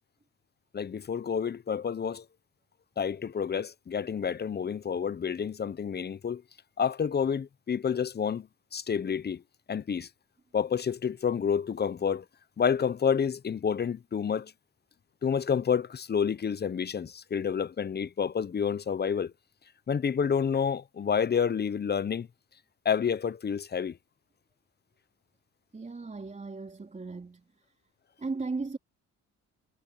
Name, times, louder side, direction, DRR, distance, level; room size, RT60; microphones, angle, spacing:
voice 1, 0.7-2.2 3.0-6.4 6.8-9.4 9.7-10.1 10.5-12.2 12.6-14.5 15.2-19.3 19.9-22.3 22.8-24.0, left 7 dB, 35° left, 0.8 m, -29 dB
voice 2, 25.7-27.5 28.2-28.8, right 3 dB, 25° right, 4.1 m, -36 dB
cardioid pair, 90°, 30 cm